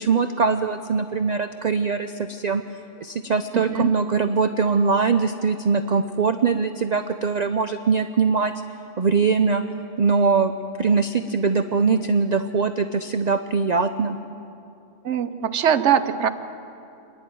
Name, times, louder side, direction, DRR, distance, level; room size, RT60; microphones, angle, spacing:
voice 1, 0.0-2.6 3.0-8.5 9.0-9.6 10.0-10.5 10.8-14.2, right 5 dB, 45° right, 9 dB, 0.6 m, -22 dB
voice 2, 3.5-3.9 15.0-16.3, right 8 dB, 65° right, 11 dB, 1.1 m, -21 dB
27.5 x 11.0 x 9.3 m, 2.7 s
omnidirectional pair, 1.3 m